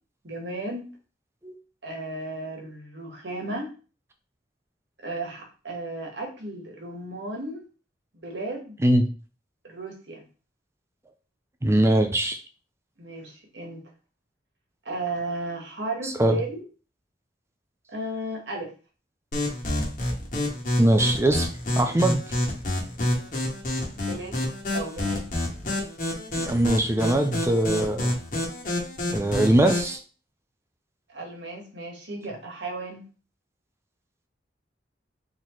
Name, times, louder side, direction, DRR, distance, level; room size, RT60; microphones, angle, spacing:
voice 1, 0.2-0.9 1.8-3.7 5.0-7.6 8.1-8.8 9.6-10.2 13.0-13.8 14.8-16.6 17.9-18.7 23.9-24.4 24.7-25.3 31.1-33.0, right 1 dB, 75° right, 0 dB, 1.5 m, -34 dB
voice 2, 11.6-12.4 16.0-16.4 20.8-21.5 21.8-22.2 26.3-28.2 29.1-30.0, right 1 dB, 15° right, 6 dB, 0.4 m, -21 dB
sound 1, 19.3-29.9, left 1 dB, 45° left, 1.6 m, -28 dB
4.3 x 3.8 x 3.1 m, 0.36 s
head